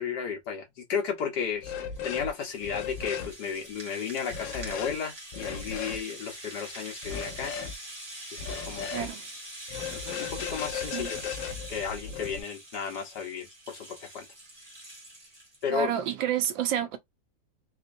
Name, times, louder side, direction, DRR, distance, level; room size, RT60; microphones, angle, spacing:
voice 1, 0.0-1.7 2.0-7.5 8.3-9.1 9.9-11.4 11.7-14.2 15.6-15.9, left 7 dB, 65° left, 1.7 m, -34 dB
Rattle (instrument), 1.4-15.6, right 1 dB, 20° right, 1.6 m, -44 dB
sound 1, 1.6-2.3 2.6-3.3 4.3-5.0 5.3-6.0 7.0-7.7 8.4-9.1 9.7-12.4, left 7 dB, 85° left, 1.3 m, -36 dB
voice 2, 8.9-9.2 10.9-11.1 15.7-17.0, right 10 dB, 85° right, 1.5 m, -29 dB
4.2 x 2.8 x 2.6 m
omnidirectional pair, 2.0 m